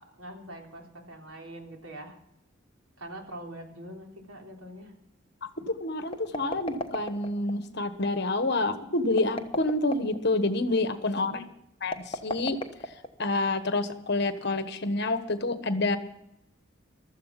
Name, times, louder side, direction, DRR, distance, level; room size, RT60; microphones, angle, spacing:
voice 1, 0.0-2.2 3.0-4.9 11.3-11.5, right 1 dB, 85° right, 1 dB, 3.7 m, -43 dB
voice 2, 5.4-11.4 11.8-12.6 13.2-16.0, left 2 dB, 50° left, 10 dB, 1.3 m, -28 dB
sound 1, 6.1-7.5 9.1-10.2 11.8-13.4, left 1 dB, 25° left, 1.1 m, -35 dB
15.5 x 13.0 x 6.0 m, 0.80 s
head